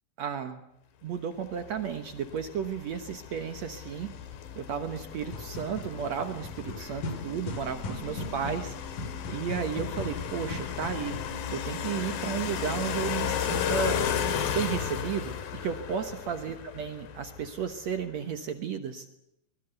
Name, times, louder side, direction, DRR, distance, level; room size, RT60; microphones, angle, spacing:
voice 1, 0.2-0.6 1.0-4.1 4.6-8.7 9.3-11.2 11.5-14.0 14.5-19.1, right 7 dB, 60° right, 8 dB, 2.0 m, -33 dB
sound 1, 1.6-17.8, left 8 dB, 80° left, 3.6 m, -35 dB
sound 2, 5.2-11.4, left 2 dB, 65° left, 4.1 m, -39 dB
24.0 x 21.0 x 8.1 m, 0.82 s
omnidirectional pair, 4.2 m